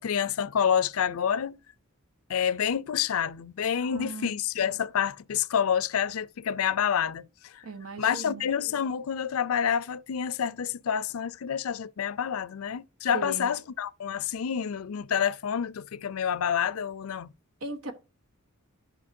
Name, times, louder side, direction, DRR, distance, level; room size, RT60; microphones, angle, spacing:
voice 1, 0.0-1.6 2.3-7.6 8.0-17.3, left 8 dB, 70° left, 0.4 m, -28 dB
voice 2, 3.8-4.3 7.6-8.4 13.1-13.5 17.6-17.9, right 2 dB, 80° right, 1.3 m, -37 dB
12.0 x 5.7 x 2.7 m
head